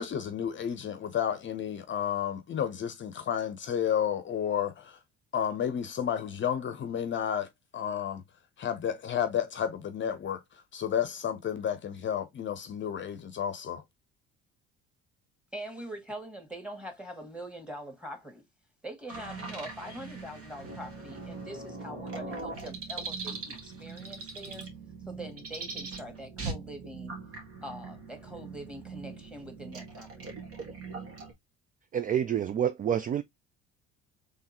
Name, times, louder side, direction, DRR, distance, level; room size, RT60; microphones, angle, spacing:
voice 1, 0.0-5.0 5.3-8.2 8.6-13.8, left 9 dB, 40° left, 0.7 m, -31 dB
voice 2, 15.5-18.4 18.8-24.7 25.1-27.2 27.6-30.3, right 1 dB, 5° right, 1.9 m, -43 dB
sound 1, 19.1-31.3, right 4 dB, 50° right, 1.7 m, -41 dB
voice 3, 31.9-33.2, right 9 dB, 30° right, 0.3 m, -28 dB
3.6 x 3.2 x 2.9 m
hypercardioid pair, 70°, 30 cm